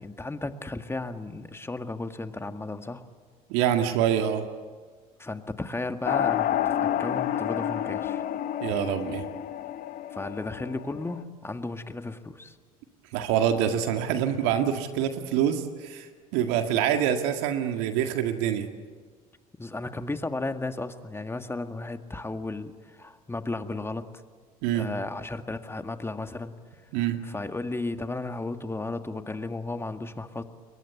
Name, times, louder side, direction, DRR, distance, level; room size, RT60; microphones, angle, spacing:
voice 1, 0.0-3.0 5.2-8.2 10.1-12.6 19.6-24.1 24.7-26.5 27.2-30.4, left 2 dB, 15° left, 8 dB, 1.9 m, -34 dB
voice 2, 3.5-4.5 8.6-9.3 13.1-18.7 24.6-24.9 26.9-27.2, right 9 dB, 65° right, 6 dB, 1.9 m, -26 dB
sound 1, 6.0-11.2, left 11 dB, 50° left, 1.2 m, -29 dB
28.5 x 22.5 x 8.2 m, 1.5 s
hypercardioid pair, 65°, 19 cm